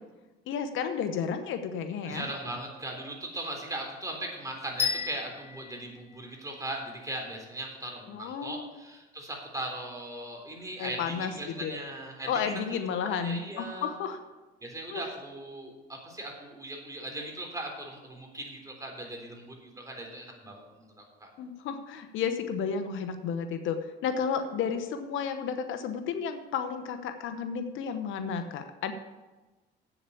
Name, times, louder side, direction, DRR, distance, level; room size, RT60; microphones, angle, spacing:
voice 1, 0.5-2.2 8.1-8.7 10.8-11.8 12.2-14.2 14.9-15.0 21.4-28.9, left 6 dB, 75° left, 8 dB, 1.0 m, -32 dB
voice 2, 2.0-13.9 14.6-21.3, right 1 dB, 15° right, 1 dB, 3.6 m, -39 dB
sound 1, 4.8-6.9, left 5 dB, 30° left, 2.1 m, -33 dB
8.3 x 7.1 x 8.2 m, 1.2 s
supercardioid pair, 70°, 20 cm